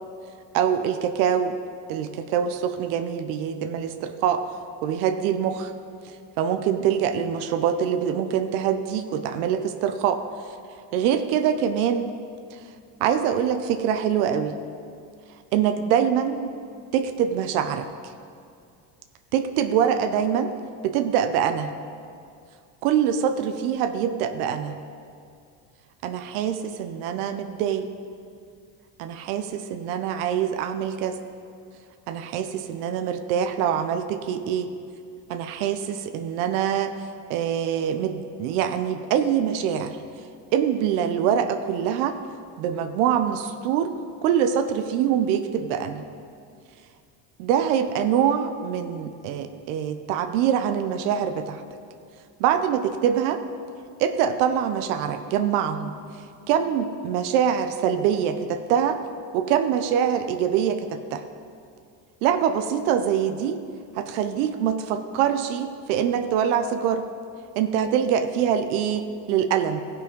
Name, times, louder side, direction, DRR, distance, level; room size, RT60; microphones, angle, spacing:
voice 1, 0.5-1.6 1.9-4.5 4.8-5.7 6.0-10.2 10.5-10.6 10.9-12.1 12.5-12.6 13.0-14.6 15.5-16.5 16.9-18.1 19.3-20.5 20.8-21.7 22.8-24.8 26.0-27.9 29.0-31.2 32.1-34.7 35.3-36.9 37.3-40.0 40.5-42.2 42.6-43.9 44.2-46.0 47.4-51.6 52.4-53.4 54.0-55.9 56.5-59.0 59.3-61.2 62.2-63.6 63.9-67.0 67.5-69.8, right 8 dB, 90° right, 8 dB, 0.7 m, -24 dB
14.5 x 5.6 x 5.1 m, 2.3 s
supercardioid pair, 100°, 42 cm